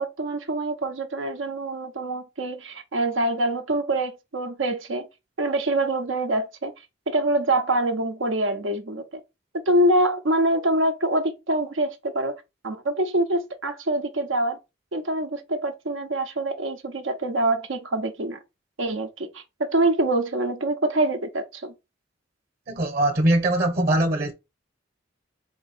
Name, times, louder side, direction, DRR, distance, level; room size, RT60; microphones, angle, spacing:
voice 1, 0.0-5.1 5.4-6.7 7.1-9.0 9.7-14.6 14.9-18.4 18.8-21.7, right 1 dB, 85° right, 0.8 m, -25 dB
voice 2, 22.7-24.3, right 1 dB, 50° right, 1.0 m, -21 dB
4.4 x 2.8 x 4.2 m
head